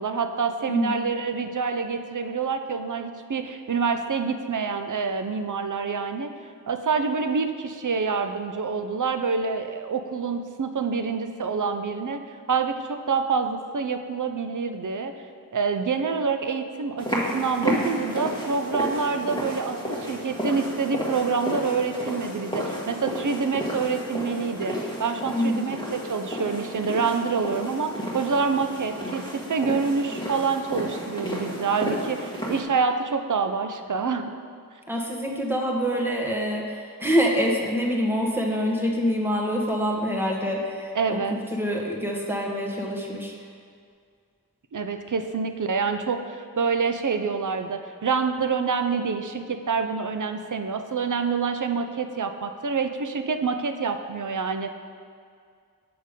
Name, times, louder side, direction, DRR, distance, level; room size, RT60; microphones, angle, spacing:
voice 1, 0.0-6.3 6.7-12.2 12.5-15.2 15.5-34.3 41.0-41.4 44.7-54.7, right 5 dB, 60° right, 7 dB, 0.6 m, -27 dB
voice 2, 0.7-1.0 25.3-25.6 34.9-43.3, equal, 5° right, -1 dB, 1.3 m, -26 dB
sound 1, 17.0-32.6, equal, 15° left, 1.6 m, -32 dB
6.7 x 6.6 x 5.2 m, 2.2 s
wide cardioid pair, 45°, 35 cm